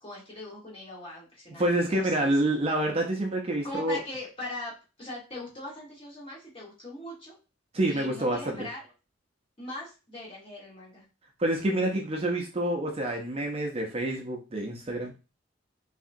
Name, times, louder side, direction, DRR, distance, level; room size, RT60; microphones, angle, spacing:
voice 1, 0.0-2.5 3.6-7.4 7.9-8.8 9.6-11.0, left 1 dB, 30° left, -4 dB, 1.3 m, -40 dB
voice 2, 1.6-4.0 7.7-8.7 11.4-15.1, right 1 dB, 30° right, 2 dB, 0.5 m, -27 dB
3.3 x 2.8 x 2.6 m, 0.31 s
head